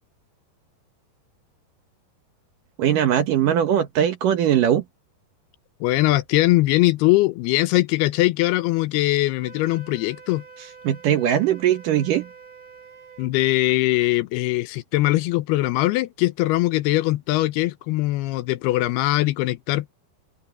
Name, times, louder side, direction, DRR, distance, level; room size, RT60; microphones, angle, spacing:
voice 1, 2.8-4.8 10.8-12.3, right 10 dB, 65° right, 2.4 m, -20 dB
voice 2, 5.8-10.4 13.2-19.9, left 18 dB, 80° left, 2.6 m, -21 dB
Wind instrument woodwind instrument, 9.4-13.3, right 5 dB, 45° right, 3.8 m, -46 dB
open air
omnidirectional pair, 4.7 m